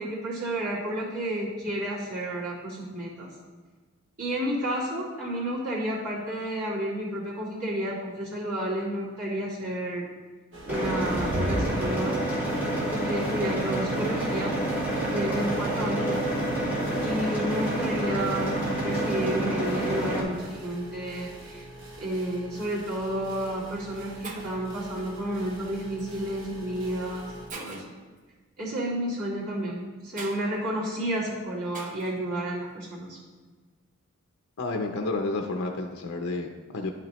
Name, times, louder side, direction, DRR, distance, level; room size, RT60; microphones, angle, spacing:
voice 1, 0.0-3.3 4.2-10.1 10.6-12.2 12.9-14.5 15.0-16.2 17.0-21.7 22.0-27.2 27.5-27.8 28.6-33.2, right 1 dB, 85° right, -7 dB, 2.6 m, -31 dB
sound 1, 10.5-27.5, equal, 60° right, 0.9 m, -41 dB
sound 2, 10.7-20.2, right 1 dB, 10° right, 1.6 m, -28 dB
Shatter, 24.2-24.7 26.0-26.2 26.8-26.9 27.5-28.0 30.2-30.4 31.7-32.1, right 3 dB, 35° right, 0.7 m, -41 dB
voice 2, 34.6-36.9, left 3 dB, 75° left, 3 dB, 0.6 m, -30 dB
10.5 x 5.9 x 3.0 m, 1.4 s
head